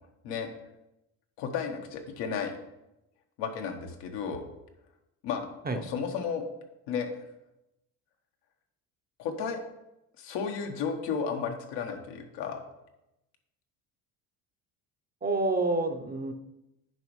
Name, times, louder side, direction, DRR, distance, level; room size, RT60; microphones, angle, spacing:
voice 1, 1.4-2.5 3.4-4.4 5.2-6.4 6.9-7.1 9.2-9.6 10.2-12.6, left 6 dB, 80° left, 4 dB, 1.2 m, -33 dB
voice 2, 15.2-16.3, right 2 dB, 20° right, 6 dB, 0.7 m, -28 dB
9.3 x 5.2 x 3.1 m, 0.90 s
supercardioid pair, 80°, 42 cm